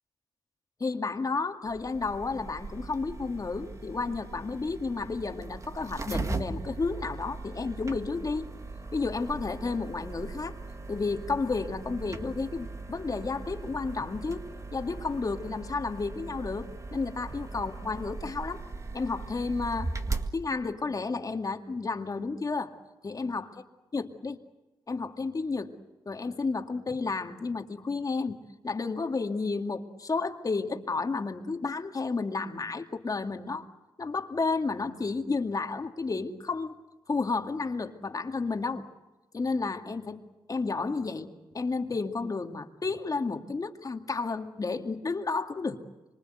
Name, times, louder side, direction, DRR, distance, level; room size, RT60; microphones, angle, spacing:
voice 1, 0.8-8.5 8.9-10.6 10.9-14.5 14.7-18.6 18.9-19.9 20.3-22.7 23.0-23.5 23.9-24.4 24.9-25.7 26.1-28.4 28.6-33.7 34.0-36.8 37.1-38.9 39.3-45.8, left 4 dB, 40° left, 5 dB, 2.2 m, -32 dB
sound 1, 1.7-20.3, right 3 dB, 35° right, 2.0 m, -39 dB
25.5 x 24.5 x 8.0 m, 1.1 s
cardioid pair, 70°, 9 cm